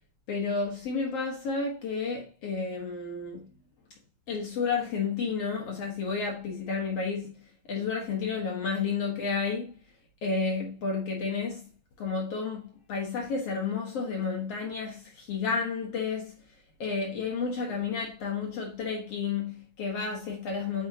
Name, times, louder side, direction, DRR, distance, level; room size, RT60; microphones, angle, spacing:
voice 1, 0.3-3.4 4.3-7.3 7.7-9.7 10.2-11.7 12.0-16.4 16.8-20.9, left 5 dB, 80° left, 1.3 m, -31 dB
11.0 x 5.1 x 2.8 m
omnidirectional pair, 5.0 m